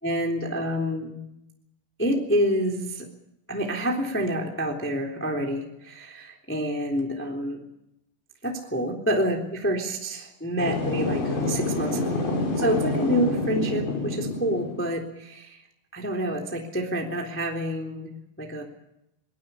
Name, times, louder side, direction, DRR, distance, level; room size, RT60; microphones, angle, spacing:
voice 1, 0.0-1.2 2.0-3.1 3.5-7.6 8.4-12.0 12.6-15.6 15.9-18.1 18.4-18.6, equal, 5° left, 1 dB, 2.3 m, -27 dB
sound 1, 10.6-14.8, left 2 dB, 80° left, 8.1 m, -27 dB
23.5 x 20.5 x 7.0 m, 0.84 s
omnidirectional pair, 5.5 m